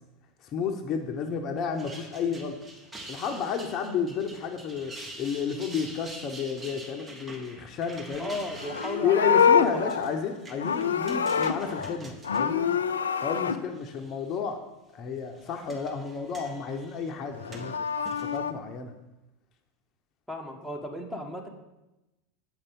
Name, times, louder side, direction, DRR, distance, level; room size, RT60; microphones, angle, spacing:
voice 1, 0.5-2.6 3.1-8.3 9.0-12.7 13.2-14.6 14.9-17.7 18.2-18.9, left 6 dB, 45° left, 4 dB, 0.9 m, -31 dB
sound 1, 1.6-13.3 13.8-14.3 15.2-18.4, right 1 dB, 20° right, 1.3 m, -46 dB
voice 2, 8.2-9.9 20.3-21.5, left 1 dB, 5° right, 1 dB, 1.5 m, -35 dB
Livestock farm animals working animals, 8.5-12.0 12.2-13.6 17.3-18.5, left 7 dB, 90° left, 0.4 m, -26 dB
7.5 x 5.5 x 5.4 m, 0.99 s
hypercardioid pair, 85°, 0 cm